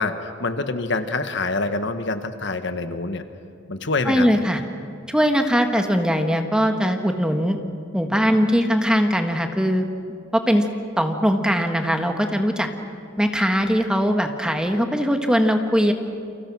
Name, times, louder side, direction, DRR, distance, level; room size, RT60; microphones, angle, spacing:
voice 1, 0.0-3.2 3.7-4.3, left 3 dB, 65° left, 8 dB, 1.4 m, -26 dB
voice 2, 4.0-4.6 5.1-7.6 7.9-9.8 10.3-10.7 11.0-12.7 13.2-15.9, equal, 5° right, 5 dB, 1.5 m, -20 dB
29.0 x 26.0 x 6.2 m, 2.6 s
head